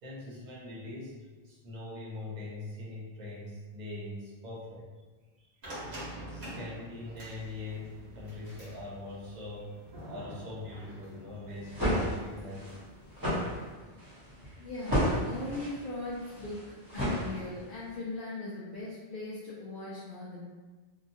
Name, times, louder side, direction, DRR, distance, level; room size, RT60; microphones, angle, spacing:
voice 1, 0.0-4.9 5.4-5.5 6.3-12.8, left 2 dB, 50° right, -6 dB, 0.8 m, -42 dB
sound 1, 5.6-13.7, right 1 dB, 85° right, 1.2 m, -47 dB
sound 2, 11.5-17.8, equal, 20° right, 1.0 m, -33 dB
voice 2, 14.6-20.4, left 2 dB, 60° left, -8 dB, 0.7 m, -39 dB
2.8 x 2.4 x 2.6 m, 1.3 s
omnidirectional pair, 1.0 m